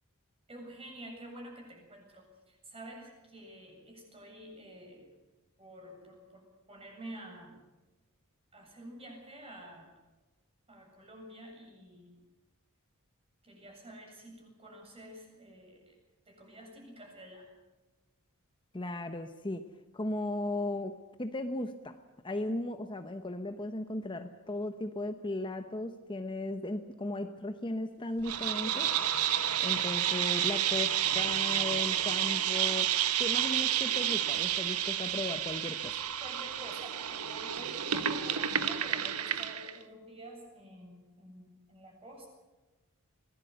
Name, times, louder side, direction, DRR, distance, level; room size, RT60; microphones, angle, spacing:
voice 1, 0.5-5.1 5.6-7.6 8.5-9.9 10.7-12.2 13.4-15.9 16.3-17.4 36.2-42.3, right 1 dB, 25° right, 1 dB, 7.7 m, -49 dB
voice 2, 18.7-19.6 19.9-21.9 22.2-28.9 29.6-32.9 33.2-35.9, left 2 dB, 20° left, 7 dB, 1.0 m, -36 dB
sound 1, 28.2-39.8, right 10 dB, 90° right, 1.3 m, -30 dB
24.5 x 18.5 x 8.0 m, 1.1 s
head